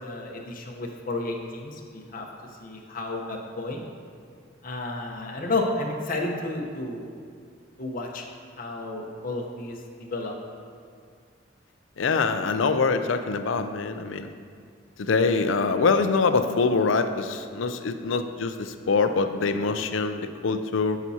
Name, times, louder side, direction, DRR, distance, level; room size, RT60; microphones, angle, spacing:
voice 1, 0.0-2.3 2.6-3.8 4.6-7.1 7.8-8.3 8.6-10.3, left 2 dB, 45° left, 0 dB, 0.9 m, -32 dB
voice 2, 12.0-14.3 15.0-21.0, left 4 dB, 80° left, 9 dB, 0.5 m, -24 dB
12.5 x 6.0 x 2.8 m, 2.1 s
head